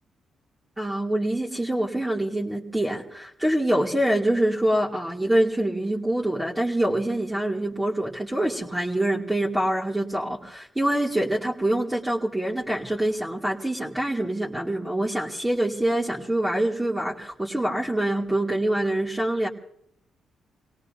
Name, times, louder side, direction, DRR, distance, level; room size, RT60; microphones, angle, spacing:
voice 1, 0.8-19.5, right 1 dB, 10° right, -5 dB, 2.4 m, -25 dB
28.0 x 18.0 x 2.6 m, 0.71 s
supercardioid pair, 60°, 0 cm